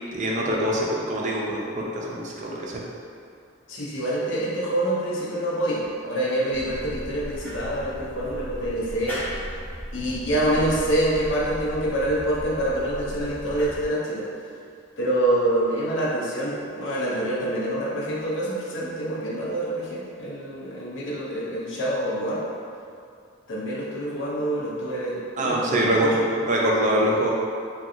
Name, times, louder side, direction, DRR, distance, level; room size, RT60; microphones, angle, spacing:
voice 1, 0.1-2.8 25.4-27.3, right 1 dB, 40° right, -3 dB, 0.4 m, -24 dB
voice 2, 3.7-9.2 9.9-14.3 15.0-22.4 23.5-26.3, right 1 dB, 70° left, -6 dB, 0.7 m, -26 dB
sound 1, 6.5-13.9, equal, 10° left, 0.7 m, -36 dB
2.7 x 2.3 x 3.6 m, 2.4 s
head